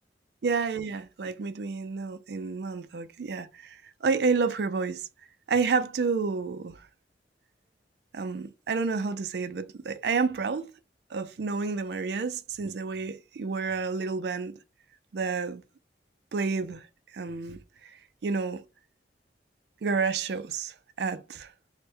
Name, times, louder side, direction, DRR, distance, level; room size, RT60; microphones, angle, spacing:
voice 1, 0.4-5.1 5.5-6.9 8.1-10.7 11.1-14.6 15.1-15.6 16.3-16.9 17.1-18.6 19.8-21.5, right 4 dB, 70° right, 0.4 m, -30 dB
3.3 x 2.1 x 4.3 m
head